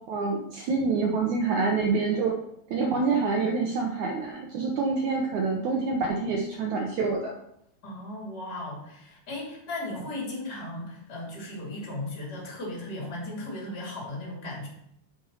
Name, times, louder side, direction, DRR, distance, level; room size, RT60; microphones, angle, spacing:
voice 1, 0.1-2.3 2.7-7.3, right 4 dB, 70° right, 0 dB, 1.9 m, -26 dB
voice 2, 7.8-14.7, left 1 dB, 25° left, -3 dB, 3.1 m, -36 dB
10.5 x 5.4 x 5.6 m, 0.75 s
omnidirectional pair, 4.5 m